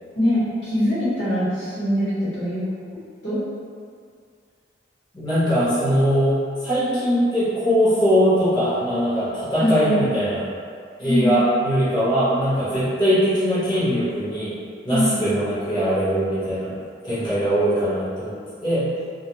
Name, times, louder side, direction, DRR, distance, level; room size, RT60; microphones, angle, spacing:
voice 1, 0.1-2.6 3.2-3.4 9.6-10.1 11.0-11.4 14.9-15.2, equal, 80° left, -12 dB, 1.1 m, -22 dB
voice 2, 5.1-10.4 11.0-14.6 14.8-16.7 17.0-18.9, equal, 25° left, -14 dB, 0.9 m, -21 dB
2.4 x 2.1 x 2.9 m, 2.2 s
head